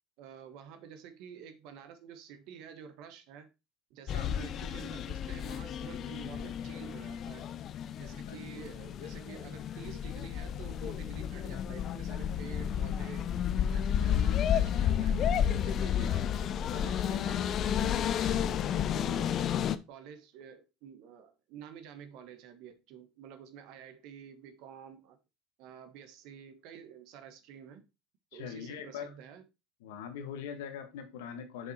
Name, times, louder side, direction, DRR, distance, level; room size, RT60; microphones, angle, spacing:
voice 1, 0.2-3.5 3.9-7.5 8.0-13.3 13.7-16.3 16.7-19.4 19.9-25.2 25.6-27.9 28.3-29.4, right 8 dB, 65° right, 1.4 m, -49 dB
sound 1, 4.1-19.8, left 9 dB, 50° left, 0.6 m, -31 dB
voice 2, 28.3-29.1 29.8-31.7, left 8 dB, 80° left, 1.5 m, -41 dB
6.4 x 5.4 x 4.3 m
hypercardioid pair, 85°, 0 cm